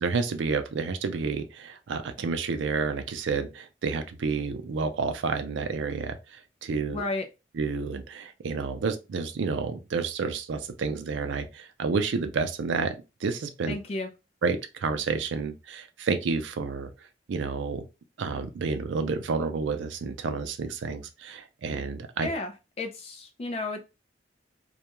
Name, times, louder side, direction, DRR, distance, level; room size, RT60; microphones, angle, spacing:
voice 1, 0.0-7.0 7.5-12.9 13.2-13.8 14.4-16.9 17.3-17.8 18.2-22.3, right 4 dB, 90° right, 0.4 m, -30 dB
voice 2, 6.9-7.3 13.7-14.1 22.2-23.8, left 2 dB, 35° left, 0.3 m, -33 dB
2.3 x 2.2 x 2.9 m
head